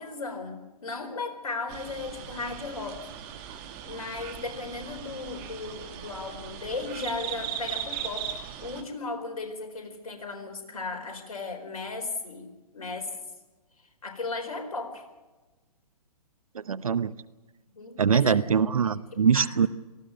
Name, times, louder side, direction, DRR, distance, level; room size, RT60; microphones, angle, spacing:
voice 1, 0.0-3.1 3.4-3.6 3.8-12.5 12.7-13.1 14.0-15.0 17.8-18.4 18.8-19.5, left 3 dB, 60° left, 5 dB, 4.3 m, -36 dB
sound 1, 1.7-8.8, right 9 dB, 25° right, 2.0 m, -38 dB
voice 2, 16.5-17.1 18.0-19.7, right 7 dB, 60° right, 17 dB, 0.8 m, -23 dB
18.5 x 15.0 x 9.7 m, 1.2 s
figure-of-eight pair, 125°, 20 cm